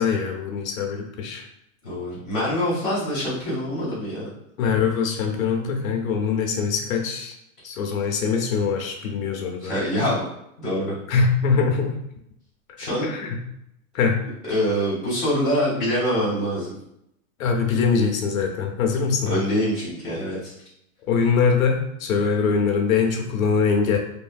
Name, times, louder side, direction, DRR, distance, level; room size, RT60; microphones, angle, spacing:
voice 1, 0.0-1.4 4.6-7.3 7.6-9.7 11.1-11.9 13.0-13.4 13.9-14.2 17.4-19.3 21.1-24.0, left 5 dB, 65° left, 2 dB, 0.7 m, -22 dB
voice 2, 1.8-4.3 9.6-10.2 10.6-10.9 12.8-13.1 14.4-16.7 19.3-20.5, equal, ahead, -20 dB, 0.4 m, -25 dB
3.0 x 2.5 x 2.3 m, 0.79 s
supercardioid pair, 175°, 43 cm